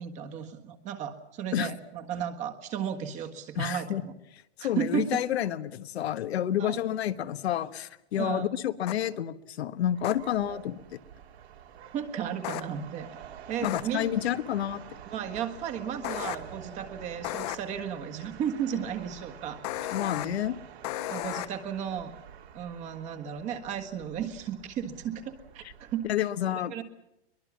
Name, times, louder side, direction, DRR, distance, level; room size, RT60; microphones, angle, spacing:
voice 1, 0.0-4.1 4.6-5.2 6.6-6.8 8.2-8.5 10.4-10.6 11.9-13.1 13.5-14.1 15.1-20.4 21.1-22.1 22.5-26.8, right 8 dB, 20° right, 6 dB, 1.6 m, -34 dB
voice 2, 3.6-4.0 4.6-10.8 13.6-14.8 19.9-20.6 26.1-26.8, left 11 dB, 75° left, 11 dB, 1.4 m, -29 dB
sound 1, 8.9-9.0 10.0-10.1 12.4-12.6 13.6-13.8 16.0-16.4 17.2-17.6 19.6-20.3 20.8-21.5, left 15 dB, 35° left, 1.2 m, -33 dB
sound 2, 9.9-26.1, right 9 dB, 75° right, 4.0 m, -49 dB
23.0 x 21.5 x 7.4 m, 0.85 s
supercardioid pair, 170°, 33 cm